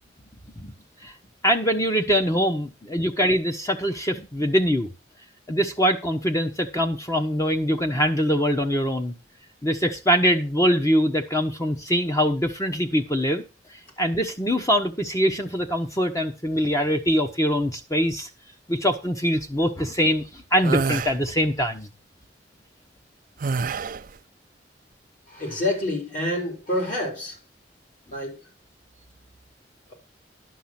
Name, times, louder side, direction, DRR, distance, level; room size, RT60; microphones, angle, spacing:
voice 1, 1.4-4.9 5.5-9.1 9.6-13.4 14.0-18.3 18.7-21.9, equal, 20° left, 1.1 m, -23 dB
sound 1, 20.6-21.1 23.4-24.1, right 4 dB, 50° right, 0.5 m, -26 dB
voice 2, 25.3-27.4 28.1-28.4, left 1 dB, 50° left, 4.4 m, -27 dB
11.5 x 6.1 x 5.9 m
head